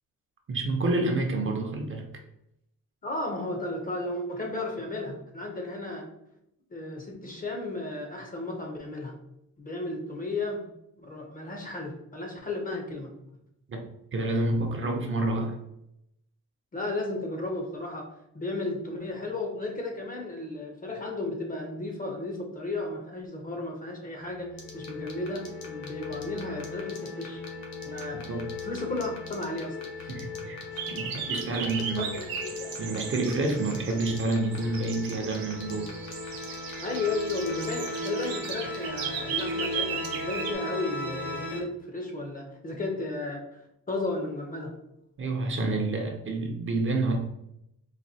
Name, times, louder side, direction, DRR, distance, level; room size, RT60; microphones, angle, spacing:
voice 1, 0.5-2.1 13.7-13.8 14.1-15.6 28.3-28.5 30.1-30.6 30.9-32.1 32.8-35.9 45.2-47.2, right 2 dB, 35° right, 2 dB, 0.6 m, -28 dB
voice 2, 3.0-6.1 6.7-9.1 9.6-10.7 11.0-13.1 16.7-18.1 18.3-24.5 24.7-27.4 27.8-30.2 32.0-32.7 36.8-43.6 43.9-44.7, left 2 dB, 25° left, 1 dB, 0.6 m, -34 dB
sound 1, 24.2-41.6, left 3 dB, 55° left, 1.1 m, -38 dB
sound 2, 24.6-38.8, left 5 dB, 80° left, 0.9 m, -44 dB
sound 3, 30.7-40.5, right 7 dB, 80° right, 0.7 m, -37 dB
4.1 x 2.6 x 2.7 m, 0.81 s
cardioid pair, 145°, 34 cm